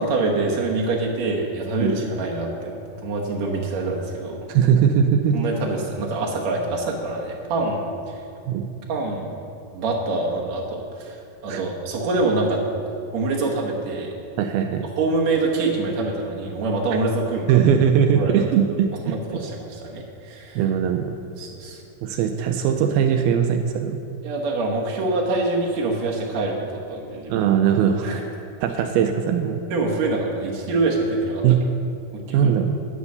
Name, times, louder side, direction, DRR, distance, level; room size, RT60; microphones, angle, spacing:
voice 1, 0.0-2.7 3.0-4.4 5.3-8.1 8.9-9.3 9.7-12.6 13.1-14.1 15.0-17.6 18.2-18.5 19.1-20.6 21.4-21.8 24.2-27.5 28.0-28.2 29.7-31.4 32.1-32.5, right 3 dB, 65° right, -1 dB, 1.7 m, -25 dB
voice 2, 4.5-5.4 8.5-8.7 11.5-11.6 14.4-14.9 17.5-19.4 20.6-21.1 22.0-24.0 27.3-28.1 28.6-29.6 31.4-31.6 32.3-32.8, right 8 dB, 80° right, 6 dB, 2.2 m, -20 dB
9.7 x 9.4 x 6.7 m, 2.5 s
omnidirectional pair, 4.8 m